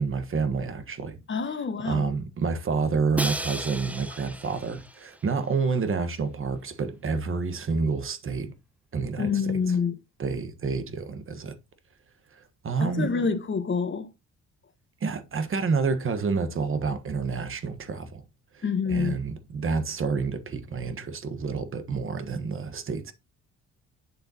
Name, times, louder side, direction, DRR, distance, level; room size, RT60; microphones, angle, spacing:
voice 1, 0.0-1.2 1.8-8.5 8.9-9.8 10.2-11.6 12.3-13.1 15.0-18.2 18.5-18.6 18.9-23.1, right 4 dB, 45° right, 1.4 m, -29 dB
voice 2, 1.3-2.1 9.2-10.0 12.8-14.1 18.6-19.2, left 5 dB, 40° left, 1.3 m, -27 dB
Crash cymbal, 3.2-5.2, right 1 dB, 5° right, 0.8 m, -34 dB
8.1 x 6.9 x 2.8 m
cardioid pair, 90°, 30 cm